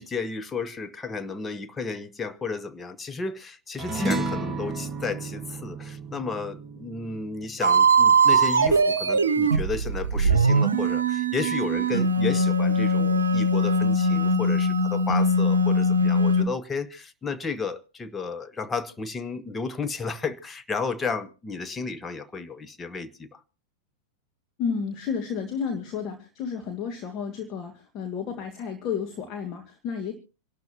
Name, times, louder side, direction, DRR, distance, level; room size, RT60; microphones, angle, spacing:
voice 1, 0.0-23.4, left 4 dB, 15° left, 1.0 m, -33 dB
sound 1, 3.8-8.5, right 2 dB, 10° right, 2.6 m, -32 dB
sound 2, 7.6-16.4, right 2 dB, 75° right, 0.9 m, -21 dB
sound 3, 8.3-9.4, right 1 dB, 65° left, 3.2 m, -40 dB
voice 2, 24.6-30.1, left 6 dB, 35° left, 1.7 m, -31 dB
26.5 x 12.0 x 2.9 m
figure-of-eight pair, 90°, 0 cm